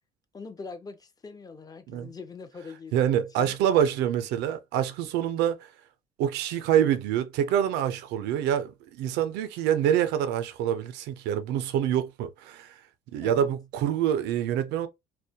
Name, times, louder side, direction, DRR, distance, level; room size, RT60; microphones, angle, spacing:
voice 1, 0.3-3.5 13.2-13.5, left 4 dB, 20° left, 0.4 m, -43 dB
voice 2, 2.9-5.7 6.2-12.7 13.1-14.9, right 10 dB, 90° right, 0.4 m, -26 dB
2.1 x 2.1 x 2.7 m
cardioid pair, 110°, 17 cm